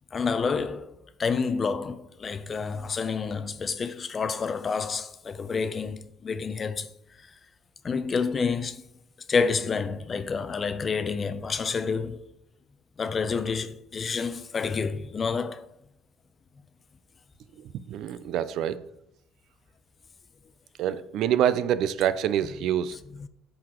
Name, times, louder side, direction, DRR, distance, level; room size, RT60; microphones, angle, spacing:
voice 1, 0.1-0.9 1.2-6.9 7.8-8.8 9.3-12.2 13.0-15.7 23.1-23.3, left 5 dB, 30° left, 0.5 m, -29 dB
voice 2, 17.9-18.8 20.8-23.0, right 10 dB, 65° right, 0.4 m, -26 dB
11.0 x 3.9 x 3.0 m
cardioid pair, 110°, 0 cm